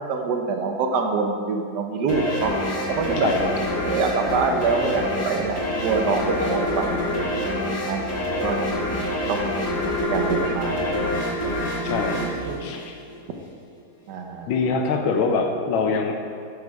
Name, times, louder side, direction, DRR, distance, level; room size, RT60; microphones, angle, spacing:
voice 1, 0.0-2.5 2.9-3.3 3.8-7.5 7.9-8.0 8.4-8.6 9.3-9.4 10.1-11.0 11.4-11.6 11.8-12.6 14.1-14.5, right 4 dB, 65° right, 4 dB, 1.3 m, -25 dB
sound 1, 2.1-13.4, left 1 dB, 45° left, 1.6 m, -26 dB
voice 2, 3.2-3.5 11.8-12.3 12.6-12.9 14.5-16.1, left 4 dB, 80° left, 4 dB, 1.6 m, -24 dB
9.8 x 5.4 x 4.7 m, 2.3 s
omnidirectional pair, 2.2 m